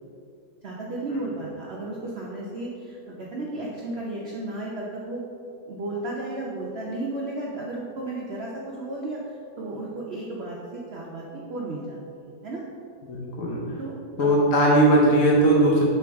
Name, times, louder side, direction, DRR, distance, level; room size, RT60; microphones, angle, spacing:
voice 1, 0.6-5.2 5.7-12.6 13.8-13.9 14.2-14.3, right 2 dB, 75° right, -4 dB, 0.6 m, -34 dB
voice 2, 13.0-13.6 14.2-15.8, right 1 dB, 55° left, -3 dB, 1.0 m, -19 dB
6.9 x 4.6 x 3.4 m, 2.7 s
omnidirectional pair, 2.0 m